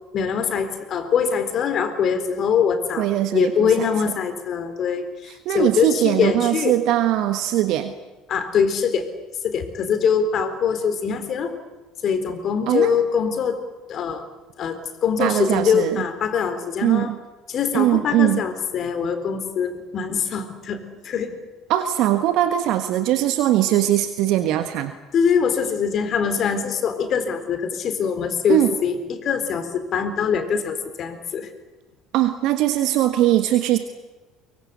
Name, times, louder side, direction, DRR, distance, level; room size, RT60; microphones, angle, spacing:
voice 1, 0.1-6.7 8.3-9.1 9.4-11.5 12.0-13.6 13.9-14.3 14.6-17.1 17.5-20.8 21.0-21.4 25.1-31.5, left 6 dB, 45° left, 9 dB, 4.0 m, -23 dB
voice 2, 3.0-4.1 5.3-7.9 12.7-13.0 15.2-16.0 16.8-17.1 17.7-18.4 21.7-24.9 28.5-28.7 32.1-33.8, right 13 dB, 60° right, 9 dB, 1.4 m, -21 dB
24.0 x 24.0 x 8.3 m, 1.2 s
figure-of-eight pair, 60°, 0 cm